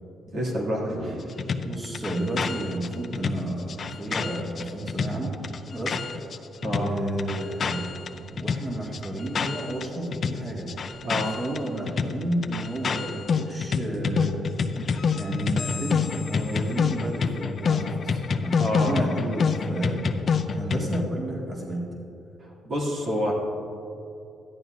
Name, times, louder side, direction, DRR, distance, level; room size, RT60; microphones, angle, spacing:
voice 1, 0.3-1.2 6.6-6.9 11.0-11.3 18.6-19.0 22.4-23.3, equal, 65° right, -4 dB, 2.6 m, -28 dB
sound 1, 1.4-6.4 6.6-9.9 10.1-21.1, left 5 dB, 50° left, 0.6 m, -27 dB
voice 2, 1.6-5.4 5.7-14.5 15.1-21.8, right 1 dB, 25° right, -3 dB, 1.9 m, -32 dB
14.0 x 10.5 x 2.6 m, 2.9 s
cardioid pair, 90°, 0 cm